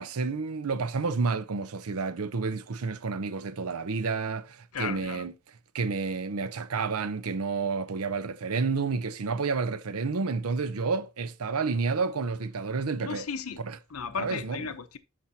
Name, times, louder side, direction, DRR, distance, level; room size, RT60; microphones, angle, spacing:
voice 1, 0.0-5.3 5.7-13.3 13.6-13.8 14.2-14.6, right 4 dB, 90° right, 0.6 m, -30 dB
voice 2, 4.7-5.2 13.0-13.6 13.9-15.0, left 6 dB, 80° left, 0.9 m, -35 dB
12.5 x 4.6 x 2.8 m
head